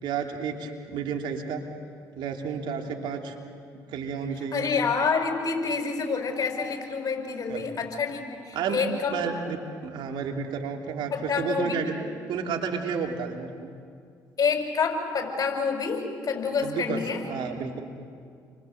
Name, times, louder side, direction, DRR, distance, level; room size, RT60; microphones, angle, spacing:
voice 1, 0.0-1.6 2.1-3.3 3.9-4.7 7.5-7.7 8.5-8.8 9.1-11.9 12.3-13.7 16.6-17.0 17.3-17.8, right 6 dB, 70° right, 2 dB, 3.2 m, -31 dB
voice 2, 4.5-9.2 11.1-11.9 14.4-17.2, left 5 dB, 45° left, 4 dB, 6.3 m, -28 dB
30.0 x 24.5 x 8.0 m, 2.3 s
hypercardioid pair, 55°, 8 cm